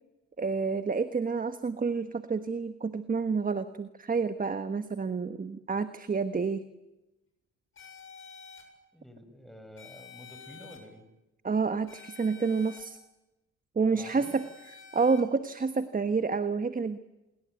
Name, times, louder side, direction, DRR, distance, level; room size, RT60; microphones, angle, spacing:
voice 1, 0.4-6.6 11.4-13.0 13.7-14.4 14.9-17.0, right 4 dB, 30° right, 11 dB, 1.3 m, -29 dB
sound 1, 7.8-8.6 9.8-10.8 11.9-12.8 14.0-15.2, left 6 dB, 45° left, 7.2 m, -49 dB
voice 2, 8.9-11.0 13.9-14.4, equal, ahead, 7 dB, 6.0 m, -49 dB
27.5 x 22.5 x 9.3 m, 0.99 s
cardioid pair, 90°, 30 cm